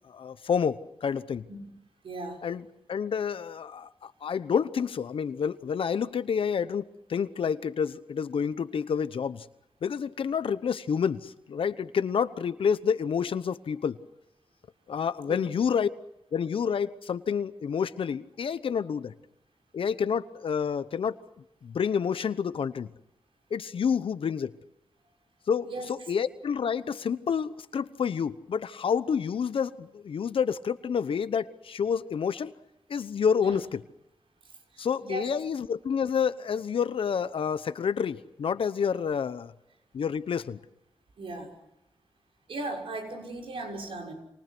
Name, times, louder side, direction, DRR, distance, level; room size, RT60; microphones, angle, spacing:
voice 1, 0.1-1.5 2.4-9.4 9.8-14.0 14.9-15.9 16.3-19.1 19.7-21.1 21.6-22.9 23.5-24.5 25.5-32.5 32.9-33.8 34.8-39.5 39.9-40.6, left 7 dB, 80° left, 13 dB, 1.0 m, -29 dB
voice 2, 2.0-2.4 15.3-15.4 25.6-25.9 33.4-33.6 34.7-35.2 41.2-41.5 42.5-44.1, right 2 dB, 80° right, 2 dB, 6.0 m, -37 dB
28.0 x 27.5 x 6.2 m, 0.88 s
wide cardioid pair, 95°, 9 cm